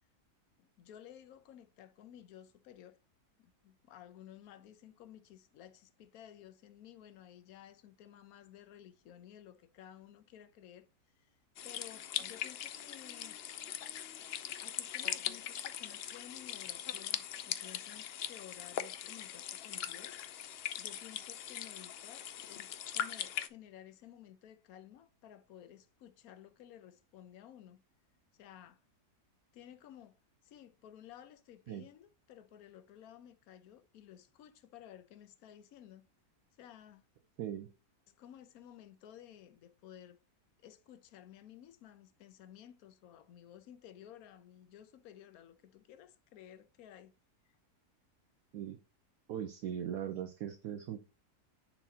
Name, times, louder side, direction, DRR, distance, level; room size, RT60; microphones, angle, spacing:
voice 1, 0.6-3.0 3.4-10.9 11.2-11.3 11.6-13.4 14.6-20.2 20.8-27.8 28.3-28.8 29.5-30.2 30.4-36.1 36.6-37.0 38.1-40.2 40.6-47.1, left 11 dB, 70° left, 1.1 m, -55 dB
sound 1, 11.6-23.5, left 10 dB, 90° left, 0.5 m, -41 dB
voice 2, 37.4-37.7 48.5-48.8 49.3-51.0, right 9 dB, 70° right, 1.0 m, -39 dB
10.0 x 4.1 x 2.8 m
omnidirectional pair, 1.7 m